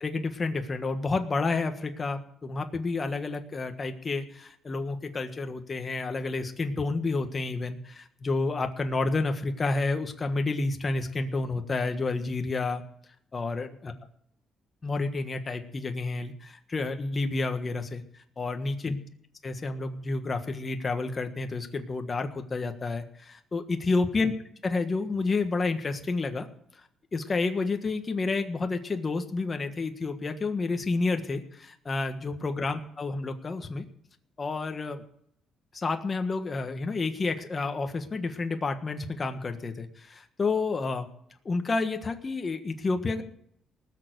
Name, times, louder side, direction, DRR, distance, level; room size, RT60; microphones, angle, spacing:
voice 1, 0.0-12.8 13.3-13.9 14.8-18.0 18.4-19.0 19.4-24.3 24.6-26.5 27.1-33.8 34.4-35.0 35.7-41.1 41.4-43.2, left 3 dB, 30° left, 6 dB, 1.4 m, -30 dB
19.0 x 6.7 x 8.1 m, 0.70 s
cardioid pair, 110°, 0 cm